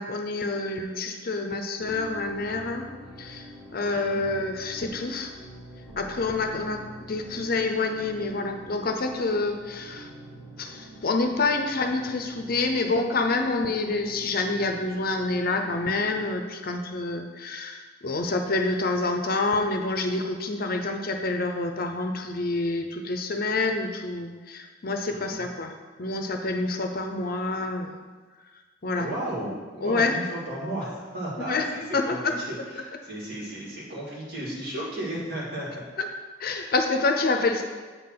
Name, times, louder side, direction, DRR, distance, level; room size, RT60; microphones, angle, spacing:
voice 1, 0.0-2.9 3.2-5.3 6.0-10.1 10.6-25.7 26.0-27.9 28.8-29.1 29.4-29.5 29.8-30.1 31.4-31.7 31.9-32.3 36.0-36.1 36.4-37.6, left 3 dB, 50° left, 4 dB, 0.6 m, -27 dB
sound 1, 1.8-16.3, right 1 dB, 80° right, 1.5 m, -45 dB
voice 2, 3.9-4.3 25.1-25.4 29.0-35.8 36.5-36.7, right 1 dB, 55° right, -5 dB, 2.3 m, -34 dB
8.1 x 3.9 x 5.8 m, 1.4 s
head